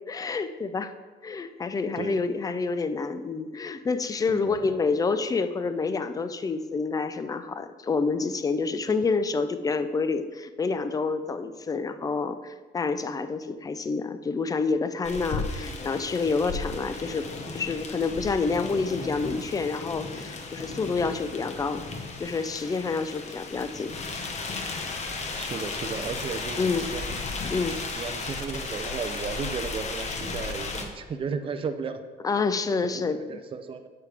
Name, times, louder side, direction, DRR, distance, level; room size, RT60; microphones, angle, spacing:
voice 1, 0.1-0.9 1.2-17.3 17.5-21.8 22.2-23.9 26.6-26.9 27.5-27.8 32.2-33.2, left 4 dB, 20° left, 11 dB, 0.5 m, -28 dB
voice 2, 4.3-4.7 8.9-9.0 25.3-27.2 28.0-32.0 32.8-33.9, right 5 dB, 30° right, 7 dB, 0.5 m, -34 dB
sound 1, 15.0-30.9, left 3 dB, 40° left, 1.0 m, -35 dB
8.5 x 6.5 x 3.4 m, 1.3 s
cardioid pair, 110°, 17 cm